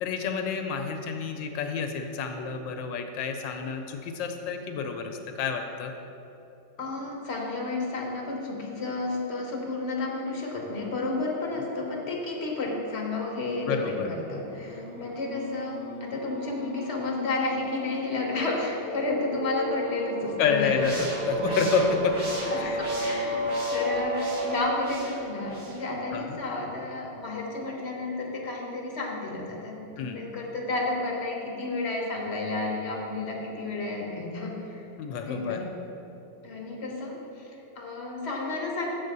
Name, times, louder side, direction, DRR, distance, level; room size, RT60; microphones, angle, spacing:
voice 1, 0.0-5.9 13.7-14.1 20.4-22.2 22.5-22.8 26.1-26.4 30.0-30.2 35.0-35.6, left 6 dB, 85° left, 5 dB, 1.3 m, -29 dB
voice 2, 6.8-20.8 22.5-23.4 23.7-34.9 35.2-35.6 36.4-38.9, left 2 dB, 50° left, -1 dB, 0.9 m, -31 dB
sound 1, 14.3-24.6, equal, 70° right, 2.1 m, -33 dB
sound 2, 20.7-25.8, right 1 dB, 55° right, 2.2 m, -39 dB
7.2 x 4.1 x 6.5 m, 3.0 s
omnidirectional pair, 2.0 m